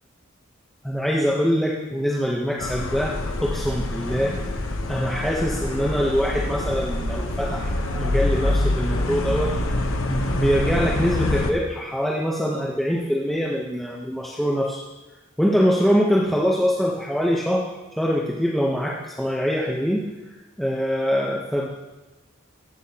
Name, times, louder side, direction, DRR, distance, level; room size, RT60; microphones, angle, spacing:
voice 1, 0.8-3.1 3.4-4.4 4.9-9.6 10.1-14.8 15.4-17.6 18.0-20.1 20.6-21.7, equal, ahead, -3 dB, 0.8 m, -23 dB
sound 1, 2.6-11.5, left 1 dB, 85° left, 0.9 m, -26 dB
14.0 x 8.0 x 2.8 m, 1.1 s
head